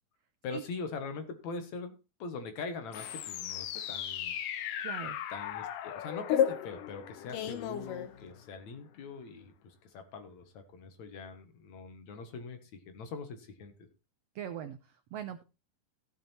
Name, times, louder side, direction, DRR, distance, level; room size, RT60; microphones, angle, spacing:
voice 1, 0.4-4.3 5.3-13.9, left 4 dB, 60° left, 8 dB, 2.6 m, -42 dB
sound 1, 2.9-8.6, left 10 dB, 80° left, 2.5 m, -34 dB
voice 2, 4.8-5.2 14.3-15.4, right 10 dB, 75° right, 9 dB, 1.5 m, -41 dB
14.5 x 7.3 x 4.4 m, 0.30 s
omnidirectional pair, 3.9 m